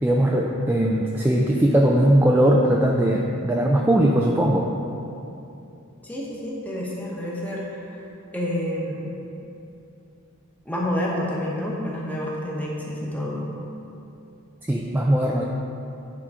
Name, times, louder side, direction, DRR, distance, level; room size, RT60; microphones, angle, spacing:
voice 1, 0.0-4.7 14.6-15.4, right 1 dB, 10° right, -2 dB, 0.3 m, -20 dB
voice 2, 6.0-7.8 8.3-9.0 10.6-13.4, left 1 dB, 5° left, -4 dB, 1.0 m, -28 dB
9.5 x 3.7 x 4.9 m, 2.7 s
head